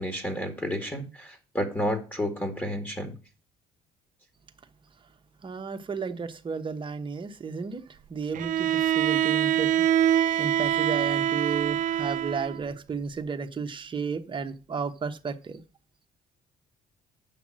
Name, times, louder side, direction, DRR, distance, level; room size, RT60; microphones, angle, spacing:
voice 1, 0.0-3.1, equal, 10° left, 2.0 m, -31 dB
voice 2, 5.4-7.8 8.1-9.7 10.4-15.6, right 5 dB, 30° right, 1.1 m, -33 dB
Bowed string instrument, 8.3-12.6, right 11 dB, 50° right, 0.5 m, -24 dB
7.5 x 5.8 x 7.5 m
cardioid pair, 110°, 17 cm